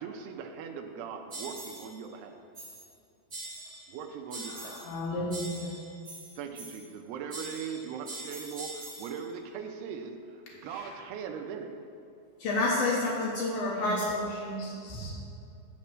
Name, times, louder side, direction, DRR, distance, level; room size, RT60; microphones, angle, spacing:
voice 1, 0.0-2.4 3.9-4.8 6.4-11.7, right 6 dB, 85° right, 4 dB, 2.5 m, -40 dB
sound 1, 1.3-1.9 2.5-2.9 3.3-3.9 4.3-5.0 5.3-6.9 7.3-9.2, right 2 dB, 25° right, 1.2 m, -43 dB
voice 2, 4.5-5.7 10.6-10.9 13.6-14.0 14.3-15.1, equal, 55° left, -6 dB, 2.1 m, -37 dB
voice 3, 12.4-14.3, left 2 dB, 70° left, -4 dB, 2.5 m, -28 dB
11.5 x 4.3 x 7.5 m, 2.6 s
omnidirectional pair, 5.0 m